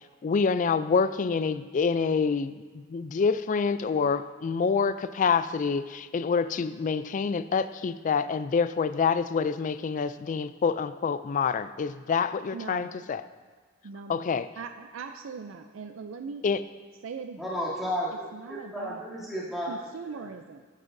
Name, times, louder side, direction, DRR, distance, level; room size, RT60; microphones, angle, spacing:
voice 1, 0.2-13.2 14.1-14.5 16.4-16.6, left 5 dB, 40° left, 14 dB, 0.3 m, -27 dB
voice 2, 12.5-12.9 13.8-16.6 17.0-17.6 18.3-19.0 19.7-20.6, right 5 dB, 70° right, 7 dB, 0.4 m, -40 dB
voice 3, 17.4-19.8 20.1-20.2, equal, ahead, -9 dB, 2.7 m, -33 dB
13.0 x 9.5 x 2.6 m, 1.5 s
head